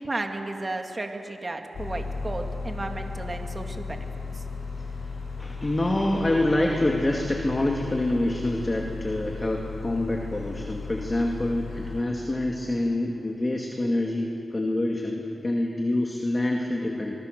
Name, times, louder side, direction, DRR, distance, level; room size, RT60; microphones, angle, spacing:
voice 1, 0.0-4.1 4.3-4.4, right 2 dB, 35° right, 4 dB, 2.2 m, -33 dB
sound 1, 1.7-12.0, left 4 dB, 90° left, 5.3 m, -35 dB
voice 2, 5.4-17.1, left 1 dB, 30° left, 1 dB, 2.4 m, -26 dB
24.5 x 23.0 x 6.9 m, 3.0 s
cardioid pair, 70°, 0 cm